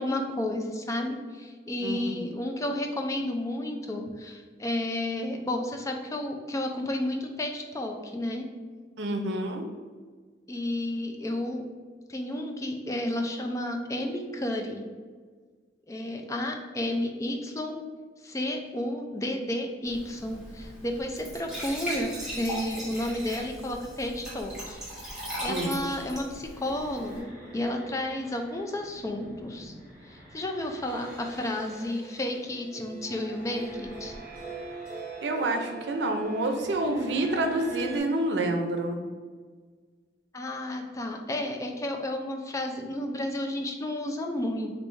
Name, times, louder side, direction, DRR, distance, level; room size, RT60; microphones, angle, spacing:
voice 1, 0.0-8.5 10.5-11.6 12.1-14.8 15.9-17.8 18.2-24.8 25.1-29.7 30.1-34.2 40.3-44.7, left 1 dB, 20° left, 3 dB, 0.4 m, -32 dB
voice 2, 1.8-2.3 9.0-9.7 25.5-25.8 35.2-39.0, right 2 dB, 85° right, 4 dB, 0.5 m, -28 dB
Glass / Trickle dribble / Fill (with liquid), 19.9-27.2, equal, 5° right, 1.4 m, -39 dB
sound 1, 26.4-38.0, right 2 dB, 50° right, 1.4 m, -44 dB
3.2 x 2.6 x 4.5 m, 1.5 s
head